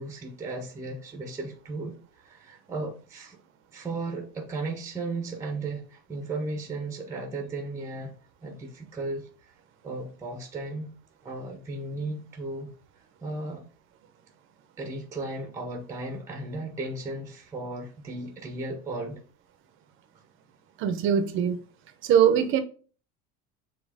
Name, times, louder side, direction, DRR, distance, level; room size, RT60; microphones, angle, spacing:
voice 1, 0.0-3.4 3.7-8.1 8.4-9.3 9.8-10.9 11.2-12.7 13.2-13.6 14.8-19.2, right 2 dB, 10° right, 0.9 m, -35 dB
voice 2, 20.8-21.6 22.0-22.6, right 8 dB, 40° right, 0.9 m, -22 dB
7.4 x 3.1 x 4.9 m
cardioid pair, 165°, 31 cm